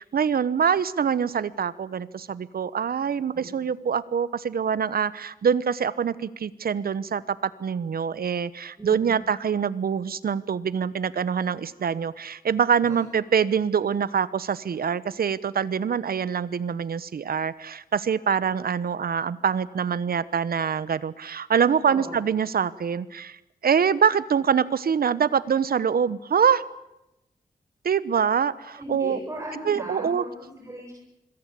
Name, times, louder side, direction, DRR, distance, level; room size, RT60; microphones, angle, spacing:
voice 1, 0.0-23.4 23.6-26.6 27.8-29.2 29.6-30.2, right 7 dB, 80° right, 17 dB, 1.2 m, -25 dB
voice 2, 8.8-9.1 21.9-22.2 28.8-31.0, equal, 20° right, -1 dB, 7.6 m, -37 dB
26.0 x 21.5 x 8.5 m, 0.92 s
wide cardioid pair, 90°, 15 cm